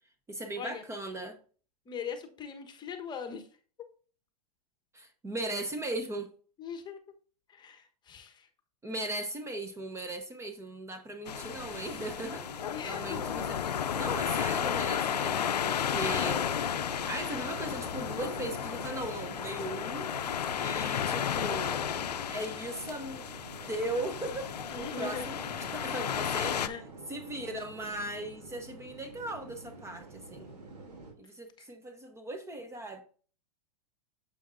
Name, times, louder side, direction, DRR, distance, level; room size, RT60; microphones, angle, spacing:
voice 1, 0.3-1.4 4.9-6.3 8.8-12.4 12.8-13.6 13.9-16.5 16.8-20.1 20.5-21.8 22.3-23.4 23.7-25.4 25.7-26.7 27.1-30.5 31.2-33.0, right 1 dB, 15° right, 0.9 m, -38 dB
voice 2, 1.9-3.5 3.8-3.9 6.6-7.0 7.5-8.5 12.7-13.4 24.7-25.2 26.4-26.8 31.6-31.7, left 6 dB, 20° left, 1.2 m, -40 dB
sound 1, 11.3-26.7, left 9 dB, 85° left, 0.6 m, -33 dB
sound 2, 11.3-31.1, right 3 dB, 80° right, 2.8 m, -47 dB
9.0 x 7.6 x 2.6 m
hypercardioid pair, 115°, 20 cm